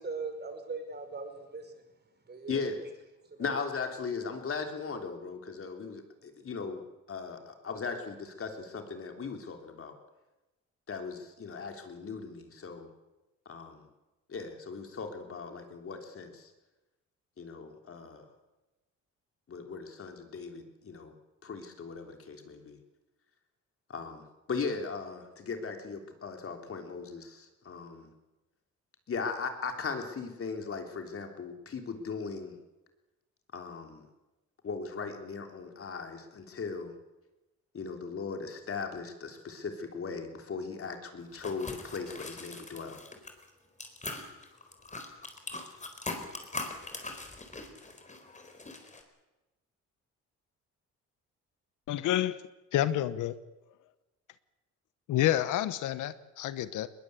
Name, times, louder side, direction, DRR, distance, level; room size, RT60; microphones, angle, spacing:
voice 1, 0.0-1.8 2.3-2.6 3.2-3.5, right 4 dB, 35° right, 7 dB, 5.1 m, -40 dB
voice 2, 2.5-2.8 3.4-6.8 7.1-9.9 10.9-12.9 13.5-13.9 14.3-16.5 17.4-18.3 19.5-21.1 21.4-22.8 23.9-28.1 29.1-32.6 33.5-34.1 34.6-36.9 37.7-43.0, left 5 dB, 45° left, 5 dB, 3.6 m, -38 dB
sound 1, 41.3-43.5 43.8-49.0, left 3 dB, 25° left, 4.2 m, -41 dB
voice 3, 51.9-52.4 52.7-53.3 55.1-56.9, left 13 dB, 85° left, 14 dB, 1.1 m, -29 dB
21.0 x 20.0 x 8.3 m, 1.1 s
cardioid pair, 90°, 30 cm